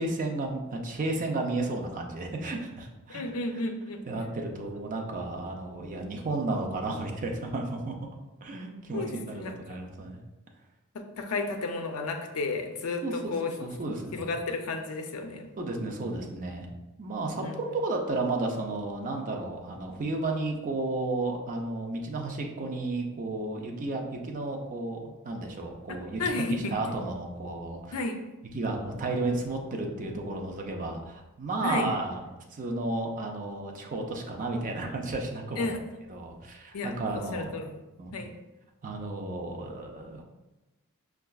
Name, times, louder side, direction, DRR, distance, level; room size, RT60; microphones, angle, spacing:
voice 1, 0.0-3.2 4.1-8.1 8.4-10.2 13.0-13.3 13.6-14.3 15.6-16.7 17.0-26.2 26.7-28.0 28.5-32.2 32.5-35.8 36.1-37.5 38.0-38.2 38.8-40.2, right 2 dB, 35° right, 2 dB, 0.5 m, -33 dB
voice 2, 3.1-4.0 8.9-9.5 11.2-13.5 14.1-15.5 17.4-17.6 26.2-26.8 27.9-28.2 31.6-31.9 35.6-35.8 36.7-37.8 38.1-38.3, left 3 dB, 75° left, 5 dB, 0.5 m, -32 dB
5.5 x 2.3 x 2.3 m, 1.0 s
head